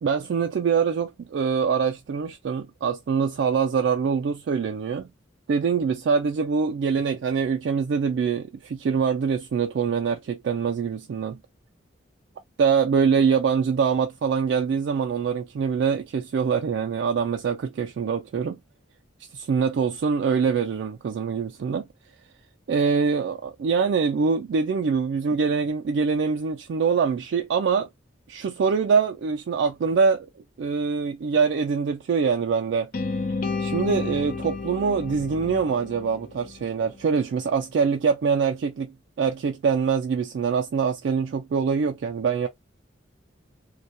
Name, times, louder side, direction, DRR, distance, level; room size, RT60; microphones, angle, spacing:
voice 1, 0.0-5.1 5.5-11.4 12.6-18.6 19.3-21.8 22.7-27.9 28.3-30.3 30.6-32.9 33.6-42.5, right 6 dB, 65° right, 0.3 m, -24 dB
sound 1, 32.9-37.0, left 4 dB, 45° left, 0.5 m, -31 dB
2.2 x 2.2 x 2.6 m
head